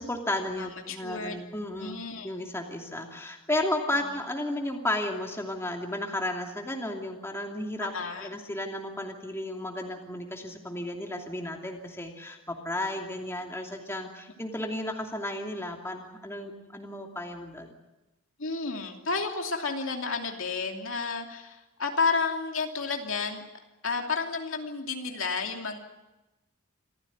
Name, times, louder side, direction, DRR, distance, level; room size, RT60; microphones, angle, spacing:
voice 1, 0.0-7.9 8.2-17.8, left 1 dB, 10° left, 2 dB, 2.7 m, -33 dB
voice 2, 0.6-1.4 1.8-2.3 3.9-4.2 7.9-8.3 18.4-23.4 23.8-25.8, left 4 dB, 65° left, 3 dB, 2.8 m, -31 dB
27.0 x 15.5 x 9.5 m, 1.0 s
head